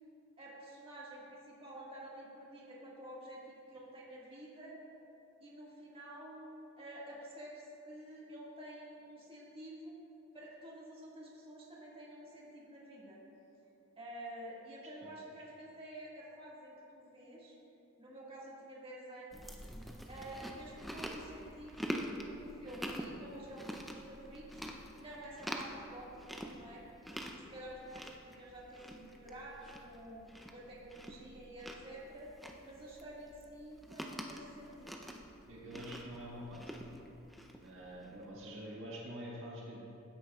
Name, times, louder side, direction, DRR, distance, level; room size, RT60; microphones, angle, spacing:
voice 1, 0.4-4.8 5.4-10.0 10.3-13.2 14.0-17.5 18.0-19.5 20.1-26.8 27.1-30.2 30.5-32.3 32.6-35.0, right 1 dB, 30° right, -6 dB, 1.8 m, -50 dB
Chewing mastication, 19.3-38.2, equal, ahead, 0.6 m, -46 dB
voice 2, 35.5-36.7 37.6-39.8, equal, 65° right, -4 dB, 1.7 m, -46 dB
16.0 x 8.8 x 2.4 m, 2.8 s
head